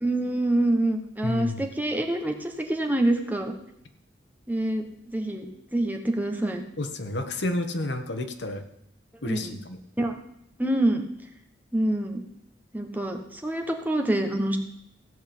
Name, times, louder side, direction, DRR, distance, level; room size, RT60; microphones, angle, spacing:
voice 1, 0.0-3.5 4.5-4.8 5.1-6.6 9.2-9.6 10.0-10.1 10.6-11.0 11.7-12.2 12.7-14.6, right 1 dB, 10° right, 4 dB, 1.3 m, -26 dB
voice 2, 1.2-1.6 6.8-8.6 9.2-9.8, left 2 dB, 70° left, 7 dB, 1.4 m, -30 dB
15.5 x 5.3 x 8.9 m, 0.75 s
head